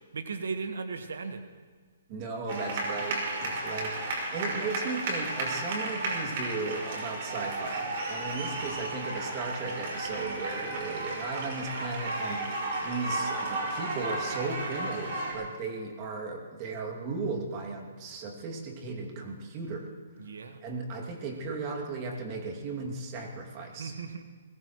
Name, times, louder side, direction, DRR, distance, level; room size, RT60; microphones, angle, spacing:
voice 1, 0.1-1.4 20.2-20.6 23.8-24.2, right 4 dB, 85° right, 7 dB, 1.3 m, -36 dB
voice 2, 2.1-19.9 20.6-24.0, right 3 dB, 30° right, 1 dB, 2.4 m, -36 dB
sound 1, 2.5-15.3, right 2 dB, 45° right, 5.3 m, -33 dB
22.5 x 20.5 x 3.1 m, 1.5 s
hypercardioid pair, 165°, 0 cm